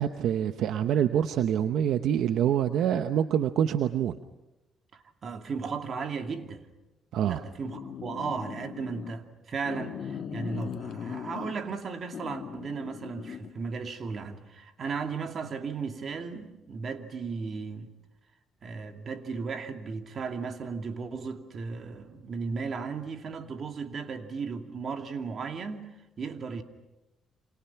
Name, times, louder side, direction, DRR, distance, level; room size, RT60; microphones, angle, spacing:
voice 1, 0.0-4.2 7.1-7.4, right 9 dB, 80° right, 0.9 m, -26 dB
voice 2, 4.9-6.7 7.2-17.9 18.6-25.9 26.2-26.6, right 5 dB, 50° right, 2.5 m, -35 dB
sound 1, 7.6-9.1 9.6-11.7 12.1-13.5, left 7 dB, 60° left, 2.1 m, -39 dB
29.5 x 26.5 x 5.9 m
cardioid pair, 90°, 0 cm